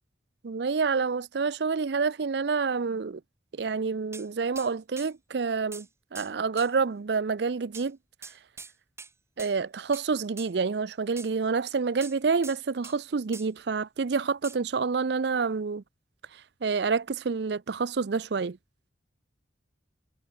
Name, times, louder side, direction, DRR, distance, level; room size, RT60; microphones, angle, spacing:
voice 1, 0.4-3.2 3.5-5.9 6.1-8.0 9.4-15.8 16.6-18.6, right 5 dB, 65° right, 0.5 m, -28 dB
sound 1, 4.1-4.3 4.6-4.7 5.0-5.1 5.7-5.9 6.1-6.3 6.6-6.7 7.7-7.9 8.2-8.7 9.0-9.1 9.4-9.5 9.9-10.1 10.4-10.5 11.2-11.3 12.0-13.0 13.3-13.5 14.4-14.6, right 4 dB, 15° right, 2.0 m, -44 dB
head